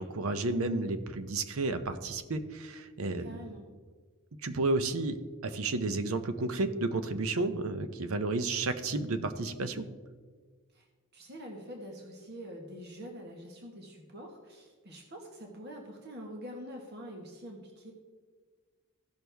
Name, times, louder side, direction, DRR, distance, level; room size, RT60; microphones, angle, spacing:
voice 1, 0.0-3.4 4.4-9.9, right 2 dB, 70° right, 10 dB, 0.7 m, -32 dB
voice 2, 3.2-3.7 10.7-10.8 11.1-17.9, equal, 45° right, 1 dB, 1.3 m, -45 dB
15.5 x 6.3 x 3.4 m, 1.5 s
head